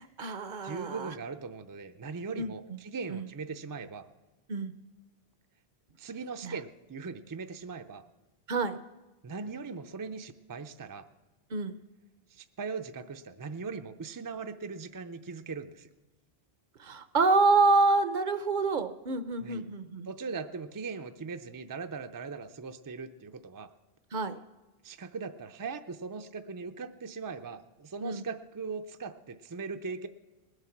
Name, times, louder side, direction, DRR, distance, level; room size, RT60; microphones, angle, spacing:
voice 1, 0.0-1.1 2.4-2.8 3.1-3.3 4.5-4.7 6.4-6.5 8.5-8.8 11.5-11.8 16.8-20.1 24.1-24.4 28.0-28.3, right 3 dB, 55° right, 11 dB, 0.7 m, -27 dB
voice 2, 0.6-4.1 6.0-8.1 9.2-11.1 12.3-15.9 19.4-19.6 20.1-23.7 24.8-30.1, right 4 dB, 30° right, 7 dB, 0.3 m, -39 dB
20.0 x 8.1 x 5.8 m, 1.2 s
omnidirectional pair, 1.0 m